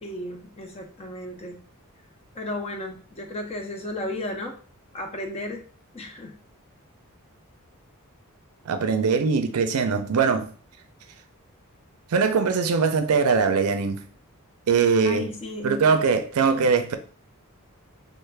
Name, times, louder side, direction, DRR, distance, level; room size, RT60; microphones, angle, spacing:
voice 1, 0.0-1.6 2.3-4.5 4.9-5.6 5.9-6.3 15.0-16.0 16.4-16.7, left 1 dB, 30° left, 0.5 m, -34 dB
voice 2, 8.7-10.5 12.1-14.0 14.7-15.3 15.6-17.0, right 5 dB, 75° right, 0.4 m, -21 dB
3.2 x 2.1 x 3.2 m
head